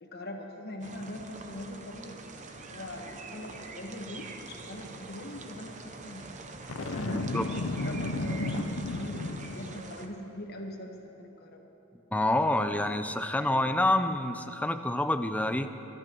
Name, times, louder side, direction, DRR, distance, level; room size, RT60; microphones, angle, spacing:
voice 1, 0.0-6.3 6.8-11.6, left 1 dB, 50° left, 2 dB, 1.4 m, -41 dB
sound 1, 0.8-10.1, right 3 dB, 35° right, 0.8 m, -44 dB
Boom, 6.7-9.9, left 2 dB, 65° left, 0.6 m, -33 dB
voice 2, 7.1-7.4 12.1-15.7, left 1 dB, 5° left, 8 dB, 0.5 m, -27 dB
24.5 x 12.0 x 3.0 m, 3.0 s
head